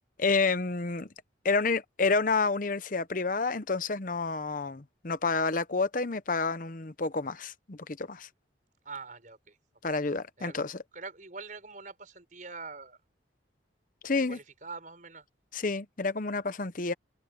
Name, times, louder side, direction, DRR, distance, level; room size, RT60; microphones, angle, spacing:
voice 1, 0.2-1.1 1.4-8.3 9.8-10.8 14.0-14.4 15.5-16.9, left 4 dB, 45° left, 0.8 m, -29 dB
voice 2, 8.8-9.6 10.4-10.6 10.9-13.0 14.1-15.2, right 4 dB, 45° right, 5.4 m, -44 dB
head